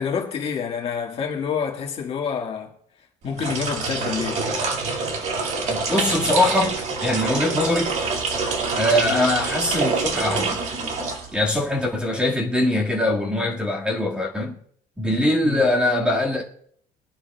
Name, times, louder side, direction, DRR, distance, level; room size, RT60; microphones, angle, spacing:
voice 1, 0.0-2.7 3.2-4.4 9.1-9.3 15.4-15.7, left 7 dB, 40° left, 1.7 m, -28 dB
sound 1, 3.3-11.7, right 4 dB, 50° right, 2.1 m, -26 dB
voice 2, 5.7-6.8 7.0-7.9 8.8-10.6 11.3-14.6 15.0-16.4, left 1 dB, 5° right, 1.8 m, -22 dB
22.0 x 11.5 x 2.3 m
cardioid pair, 155°, 16 cm